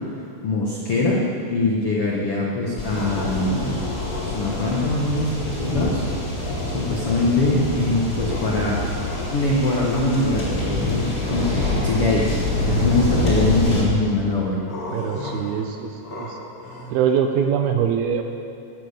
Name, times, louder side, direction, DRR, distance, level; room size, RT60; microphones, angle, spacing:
voice 1, 0.4-3.8 4.2-6.0 6.6-8.8 9.3-14.6, left 2 dB, 80° left, -3 dB, 1.2 m, -23 dB
sound 1, 2.8-4.9 6.4-7.8 8.2-9.9 11.4-12.5 14.6-16.9, left 2 dB, 40° left, 1.4 m, -35 dB
sound 2, 2.8-13.8, left 1 dB, 20° left, 4.0 m, -26 dB
voice 2, 14.9-16.4 16.9-18.2, right 8 dB, 75° right, 5 dB, 2.4 m, -23 dB
16.0 x 10.5 x 6.7 m, 2.5 s
omnidirectional pair, 5.0 m